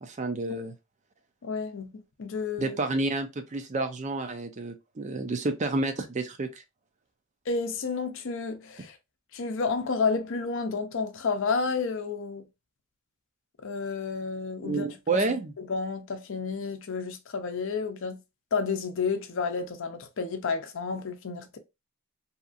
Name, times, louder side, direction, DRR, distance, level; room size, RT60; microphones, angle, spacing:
voice 1, 0.0-0.7 2.6-6.5 14.6-15.5, right 3 dB, 35° right, 0.4 m, -29 dB
voice 2, 1.4-2.8 7.5-9.0 9.3-12.5 13.6-15.2 15.6-18.2 18.5-21.6, left 4 dB, 65° left, 0.5 m, -31 dB
2.8 x 2.4 x 2.4 m
head